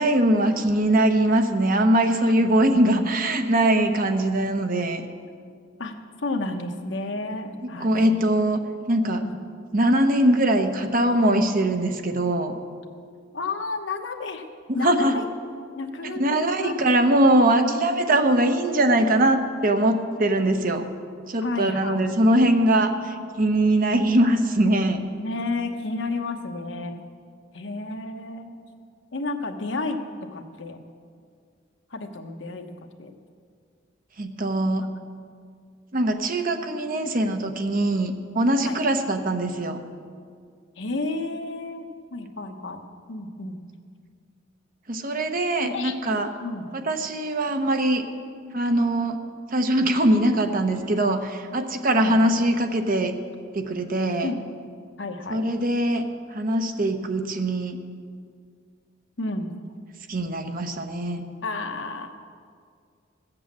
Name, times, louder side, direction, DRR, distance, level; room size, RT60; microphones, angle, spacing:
voice 1, 0.0-5.0 7.6-8.6 8.9-9.2 9.7-12.5 14.7-15.2 16.0-20.9 21.3-25.0 34.2-34.8 35.9-39.8 44.9-46.3 46.7-48.0 48.5-49.2 49.5-53.1 53.5-54.3 55.3-57.8 60.1-61.3, right 1 dB, 45° right, 6 dB, 0.9 m, -22 dB
voice 2, 6.2-8.2 9.2-9.3 13.3-14.5 14.7-15.2 15.7-16.8 21.4-22.1 25.1-27.0 27.5-28.7 29.1-30.0 30.3-30.8 31.9-32.6 33.0-33.1 34.6-34.9 38.6-38.8 40.8-41.9 42.1-42.8 43.1-43.6 45.6-46.6 51.9-52.3 54.2-54.4 55.0-55.4 59.2-59.5 61.4-62.1, left 3 dB, 70° left, 5 dB, 1.1 m, -31 dB
15.0 x 7.9 x 7.4 m, 2.1 s
head